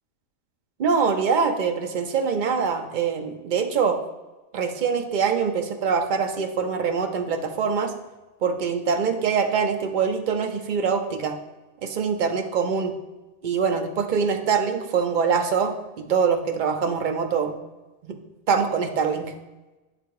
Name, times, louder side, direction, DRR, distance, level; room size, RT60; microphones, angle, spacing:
voice 1, 0.8-4.0 4.5-7.9 8.4-11.3 11.8-12.9 13.4-17.5 18.0-18.2 18.5-19.3, right 6 dB, 50° right, 5 dB, 0.6 m, -24 dB
8.8 x 3.5 x 4.7 m, 1.1 s
omnidirectional pair, 1.4 m